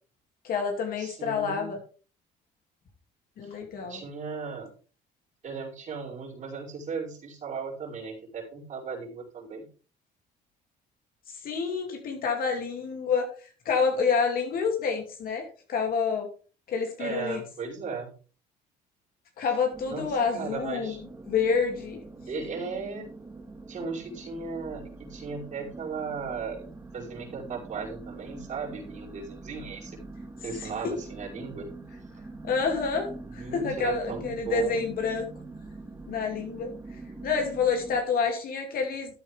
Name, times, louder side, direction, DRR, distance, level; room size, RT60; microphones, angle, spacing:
voice 1, 0.4-1.8 3.4-4.0 11.3-13.3 13.6-16.3 16.7-17.4 19.4-21.0 21.3-22.0 30.6-30.7 32.4-35.3 36.1-36.7 37.2-39.1, left 5 dB, 60° left, 3 dB, 2.9 m, -28 dB
voice 2, 1.0-1.7 3.4-4.7 5.4-9.7 17.0-18.2 19.9-21.0 22.3-23.1 23.7-26.7 26.9-30.0 30.4-31.7 33.4-34.9, right 5 dB, 45° right, -3 dB, 5.2 m, -36 dB
sound 1, 19.7-38.0, right 3 dB, 15° right, 2.3 m, -44 dB
13.5 x 8.7 x 3.6 m, 0.37 s
cardioid pair, 110°, 17 cm